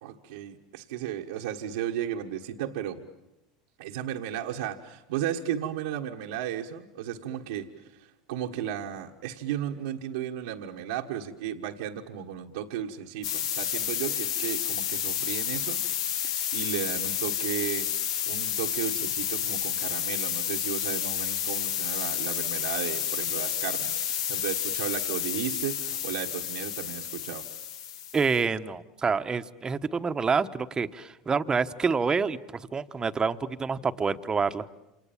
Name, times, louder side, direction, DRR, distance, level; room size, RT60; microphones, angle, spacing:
voice 1, 0.0-3.1 3.8-15.8 16.2-17.9 18.3-24.0 24.3-27.4, right 10 dB, 85° right, -1 dB, 1.5 m, -34 dB
sound 1, 13.2-28.4, left 9 dB, 85° left, 1.1 m, -30 dB
voice 2, 28.1-34.6, right 5 dB, 20° right, 10 dB, 1.1 m, -27 dB
28.0 x 27.5 x 7.4 m, 0.90 s
hypercardioid pair, 95°, 3 cm